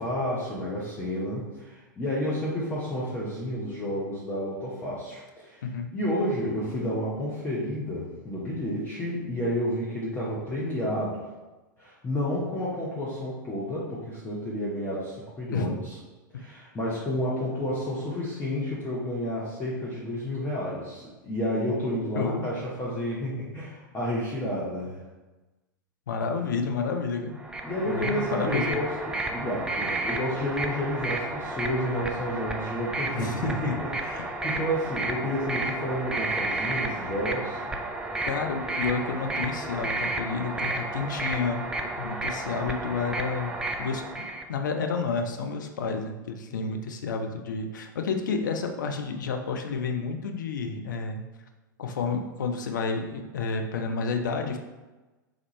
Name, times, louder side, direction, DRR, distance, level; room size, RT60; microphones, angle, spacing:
voice 1, 0.0-5.6 5.9-11.2 11.8-16.0 16.3-25.0 27.6-28.9 29.2-37.6 46.5-46.7, equal, 15° left, -7 dB, 0.9 m, -31 dB
voice 2, 22.2-22.5 26.1-27.4 27.8-28.8 33.1-33.8 38.3-41.7 42.0-44.0 44.5-51.2 51.8-54.6, left 4 dB, 65° left, 4 dB, 0.5 m, -30 dB
sound 1, 27.4-44.4, right 2 dB, 5° right, 0.3 m, -32 dB
3.6 x 3.6 x 3.0 m, 1.1 s
figure-of-eight pair, 95°, 11 cm